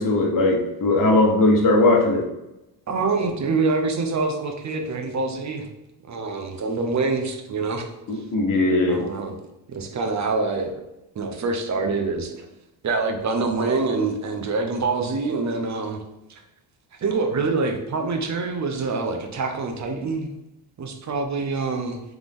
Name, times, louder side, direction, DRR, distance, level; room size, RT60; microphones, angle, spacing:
voice 1, 0.0-2.2 8.1-9.0, left 2 dB, 40° left, 0 dB, 1.3 m, -19 dB
voice 2, 2.9-5.7 6.0-7.9 8.1-8.2 8.9-9.3 9.7-10.8 11.1-12.5 12.8-16.0 16.3-16.4 17.0-20.3 20.8-22.0, right 3 dB, 35° right, 5 dB, 0.8 m, -25 dB
3.6 x 3.6 x 3.6 m, 0.92 s
cardioid pair, 90°, 50 cm